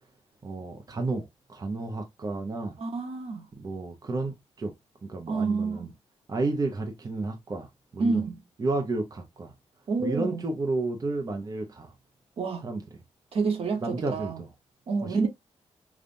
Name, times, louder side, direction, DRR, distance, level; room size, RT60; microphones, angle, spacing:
voice 1, 0.4-2.8 3.6-4.7 5.0-5.9 6.3-8.3 8.6-9.5 10.0-11.9 12.6-12.8 13.8-14.5 15.0-15.3, right 3 dB, 35° right, 0.7 m, -31 dB
voice 2, 2.8-3.5 5.3-5.9 8.0-8.4 9.9-10.4 12.4-12.6 13.3-14.4 14.9-15.3, right 4 dB, 65° right, 1.1 m, -28 dB
5.2 x 2.4 x 2.5 m
wide cardioid pair, 115°, 11 cm